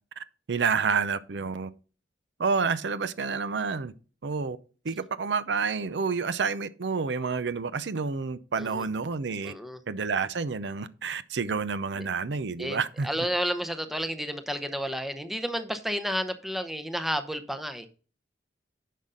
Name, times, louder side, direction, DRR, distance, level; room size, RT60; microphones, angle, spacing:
voice 1, 0.5-1.7 2.4-3.9 4.2-4.6 4.8-9.5 9.9-13.1, right 5 dB, 85° right, 0.6 m, -29 dB
voice 2, 9.4-9.8 12.0-12.1 12.6-17.9, equal, ahead, 0.7 m, -31 dB
10.5 x 5.5 x 3.8 m
head